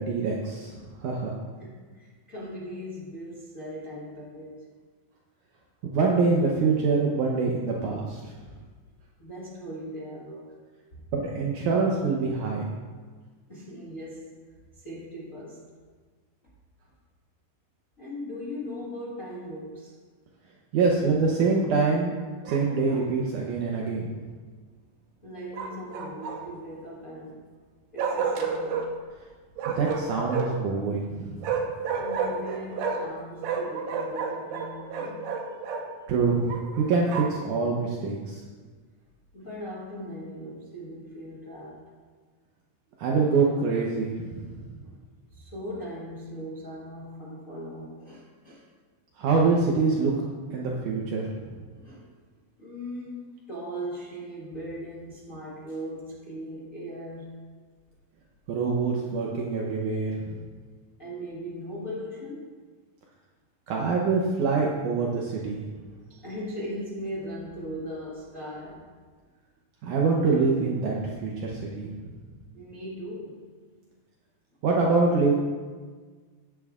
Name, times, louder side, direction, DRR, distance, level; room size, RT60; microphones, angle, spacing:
voice 1, 0.0-1.3 5.8-8.2 11.1-12.7 20.7-22.1 22.5-24.0 29.7-31.4 36.1-38.4 43.0-44.6 49.2-50.1 50.5-51.5 58.5-60.4 63.7-65.6 69.8-71.9 74.6-75.3, right 4 dB, 70° right, -2 dB, 2.1 m, -25 dB
voice 2, 1.6-4.7 9.2-10.6 10.9-11.0 13.5-14.4 14.8-15.7 18.0-20.0 25.2-27.4 27.9-29.0 29.6-29.8 31.9-35.3 39.3-41.9 45.3-48.7 51.7-52.1 52.6-57.5 61.0-62.6 66.1-68.9 72.5-73.5, equal, 65° left, -6 dB, 0.7 m, -39 dB
Bark, 22.4-23.1 25.5-26.6 28.0-28.9 29.6-30.7 31.4-33.1 33.4-35.8 36.5-37.4, right 5 dB, 90° right, 2.8 m, -31 dB
14.0 x 10.5 x 2.4 m, 1.5 s
omnidirectional pair, 4.0 m